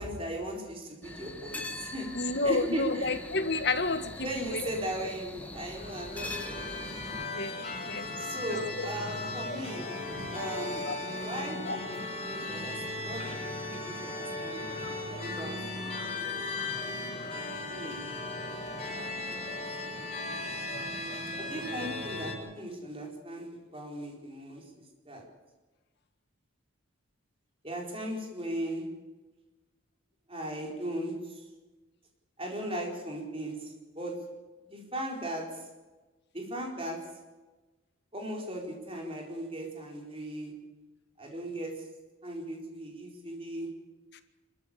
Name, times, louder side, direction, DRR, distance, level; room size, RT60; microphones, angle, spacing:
voice 1, 0.0-3.1 4.2-6.8 8.2-9.9 10.3-10.9 11.2-11.9 12.2-13.4 13.7-14.6 15.2-16.5 17.7-18.1 21.4-25.3 27.6-29.0 30.3-31.5 32.4-34.3 34.7-35.7 36.3-37.2 38.1-40.6 41.2-41.9 42.2-43.8, right 1 dB, 25° right, 0 dB, 4.4 m, -38 dB
sound 1, 1.0-7.2, left 2 dB, 5° left, 1.5 m, -42 dB
voice 2, 2.1-4.8 7.3-7.5 7.9-8.1 8.5-8.9 10.8-10.9 11.6-11.8 18.8-19.0 44.1-44.2, left 3 dB, 55° left, 8 dB, 1.7 m, -31 dB
sound 2, 5.6-22.3, left 2 dB, 30° left, 5.3 m, -37 dB
25.5 x 14.0 x 8.7 m, 1.2 s
head